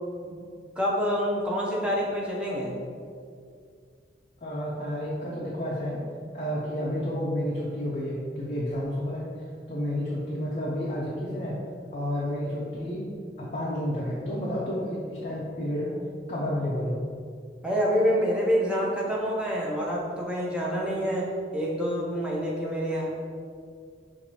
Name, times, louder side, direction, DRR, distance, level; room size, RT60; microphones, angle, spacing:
voice 1, 0.8-2.8 17.6-23.1, equal, 5° right, -4 dB, 0.6 m, -27 dB
voice 2, 4.4-6.0 6.3-9.3 9.7-11.6 11.9-13.1 13.4-16.0 16.3-17.0, equal, 40° left, -5 dB, 0.5 m, -30 dB
5.7 x 2.5 x 2.8 m, 2.2 s
head